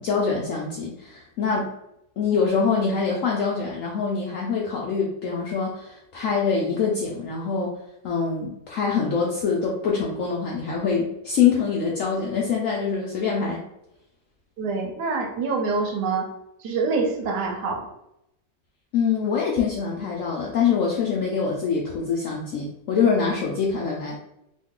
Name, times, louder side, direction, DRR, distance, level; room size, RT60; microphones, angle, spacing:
voice 1, 0.0-1.7 2.2-7.7 8.0-13.6 18.9-24.2, left 5 dB, 75° left, -2 dB, 0.7 m, -24 dB
voice 2, 14.6-16.3 16.6-17.9, right 4 dB, 75° right, 2 dB, 1.2 m, -26 dB
3.0 x 2.3 x 3.6 m, 0.85 s
omnidirectional pair, 1.9 m